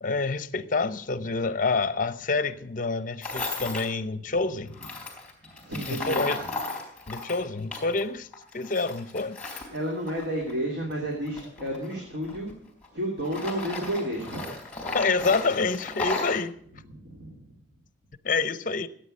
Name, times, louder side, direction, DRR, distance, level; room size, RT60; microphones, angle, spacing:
voice 1, 0.0-4.7 5.9-6.4 7.1-8.3 8.5-9.4 14.9-16.5 18.2-18.9, left 4 dB, 45° left, 0.7 m, -27 dB
Tools, 3.2-3.9 4.7-8.0 8.3-10.6 11.2-12.9 13.2-16.4, left 3 dB, 5° left, 4.0 m, -35 dB
voice 2, 5.7-6.2 9.7-12.5 12.9-14.4 17.0-17.4, right 1 dB, 60° right, 2.9 m, -31 dB
14.0 x 8.9 x 6.4 m
head